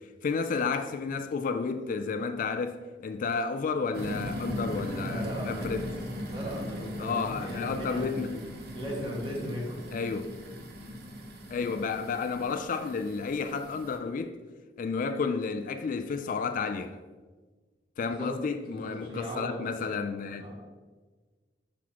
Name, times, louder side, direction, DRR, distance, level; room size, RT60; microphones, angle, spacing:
voice 1, 0.2-5.9 7.0-8.4 9.9-10.3 11.5-14.4 14.8-17.0 18.0-20.5, left 5 dB, 45° left, 0.3 m, -31 dB
sound 1, 3.9-14.0, equal, 60° right, 0.8 m, -39 dB
voice 2, 5.0-5.8 6.3-8.4 8.7-9.8 18.0-18.3 18.7-19.9 20.4-20.6, equal, 30° right, 1.7 m, -38 dB
6.0 x 6.0 x 2.9 m
head